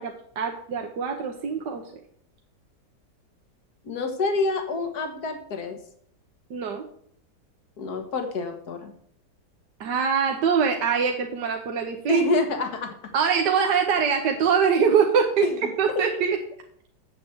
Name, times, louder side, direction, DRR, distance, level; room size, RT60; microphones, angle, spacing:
voice 1, 0.0-1.8 6.5-6.9 9.8-12.2 13.1-15.5 15.8-16.4, right 6 dB, 75° right, 2 dB, 1.6 m, -23 dB
voice 2, 3.8-5.8 7.8-8.9 12.1-13.0 15.4-15.5, left 3 dB, 60° left, 5 dB, 2.0 m, -27 dB
7.5 x 7.4 x 7.9 m, 0.65 s
omnidirectional pair, 1.9 m